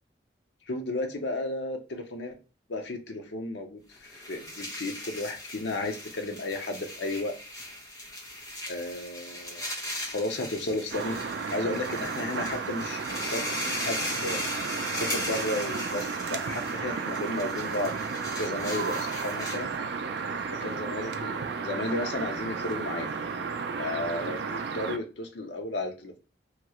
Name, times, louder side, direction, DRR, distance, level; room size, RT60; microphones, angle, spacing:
voice 1, 0.7-2.4 2.7-7.3 8.7-9.7 10.1-11.2 11.5-14.4 14.9-17.9 18.4-19.7 20.5-23.1 23.8-26.2, left 2 dB, 75° left, 0.6 m, -33 dB
sound 1, 4.0-19.7, left 1 dB, 20° left, 0.8 m, -38 dB
sound 2, 10.9-25.0, right 5 dB, 65° right, 0.3 m, -33 dB
2.9 x 2.3 x 2.9 m
head